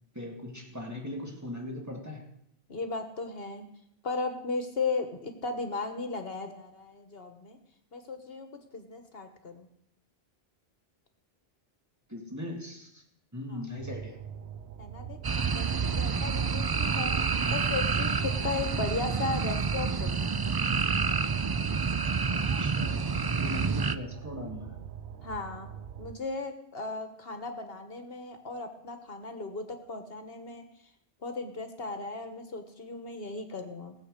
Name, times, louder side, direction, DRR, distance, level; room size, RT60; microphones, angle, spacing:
voice 1, 0.1-2.3 12.1-13.0 13.3-14.2 15.8-15.9 22.3-23.1 23.4-24.8, left 1 dB, 15° right, 0 dB, 2.4 m, -39 dB
voice 2, 2.7-3.6 4.0-7.6 7.9-9.7 13.5-13.6 14.8-15.2 15.5-17.2 17.5-20.3 25.2-25.7 26.0-30.6 31.2-33.9, left 3 dB, 65° left, 7 dB, 1.6 m, -36 dB
sound 1, 13.8-26.1, right 8 dB, 80° right, 1.0 m, -42 dB
sound 2, 15.2-23.9, right 5 dB, 40° right, 0.3 m, -28 dB
18.0 x 7.8 x 6.6 m, 0.72 s
omnidirectional pair, 1.1 m